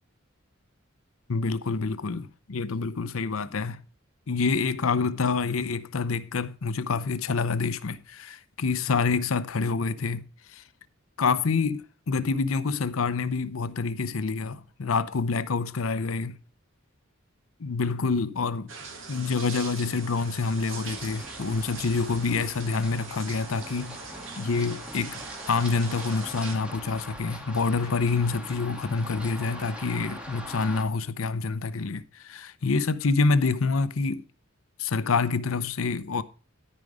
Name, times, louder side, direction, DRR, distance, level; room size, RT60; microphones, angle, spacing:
voice 1, 1.3-3.8 4.3-10.2 10.5-10.6 11.2-16.4 17.6-18.7 19.1-24.0 24.4-34.2 34.8-36.2, left 4 dB, 85° left, 0.7 m, -27 dB
sound 1, 18.7-26.6, right 5 dB, 70° right, 2.0 m, -42 dB
Run, 20.9-30.8, equal, 5° right, 1.7 m, -42 dB
13.5 x 5.3 x 4.8 m
head